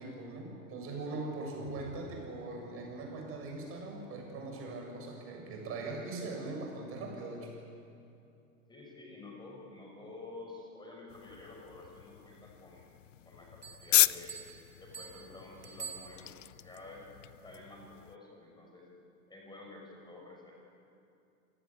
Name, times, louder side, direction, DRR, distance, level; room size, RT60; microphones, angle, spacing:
voice 1, 0.0-7.5, right 2 dB, 30° right, 1 dB, 7.2 m, -41 dB
Bowed string instrument, 1.6-5.0, left 1 dB, 85° left, 5.1 m, -56 dB
voice 2, 8.7-12.9 13.2-14.4 14.8-16.3 16.6-17.1 17.4-18.9 19.3-20.5, left 2 dB, 10° left, -1 dB, 5.8 m, -50 dB
sound 1, 11.1-18.2, left 13 dB, 55° left, 0.6 m, -35 dB
Bell, 13.6-16.7, right 6 dB, 85° right, 1.6 m, -48 dB
27.5 x 17.5 x 8.4 m, 2.6 s
figure-of-eight pair, 100°, 45 cm